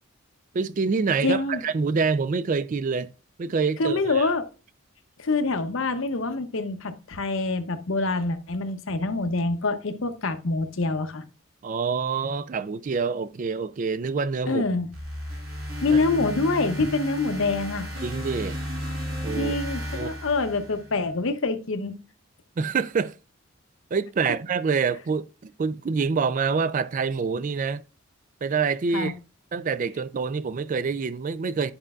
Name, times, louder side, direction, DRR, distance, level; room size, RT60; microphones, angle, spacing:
voice 1, 0.5-3.1 3.4-4.3 11.6-14.6 15.9-16.0 18.0-18.6 19.2-19.6 19.9-20.1 22.6-23.2 23.9-27.8 28.4-29.1 29.5-31.7, right 5 dB, 35° right, 0.3 m, -26 dB
voice 2, 1.2-1.6 3.8-4.4 5.2-11.2 14.5-14.9 15.8-17.9 19.4-22.0 28.9-29.1, left 3 dB, 65° left, 0.8 m, -26 dB
sound 1, 14.9-21.1, left 1 dB, 80° right, 2.9 m, -33 dB
9.8 x 5.1 x 2.4 m
head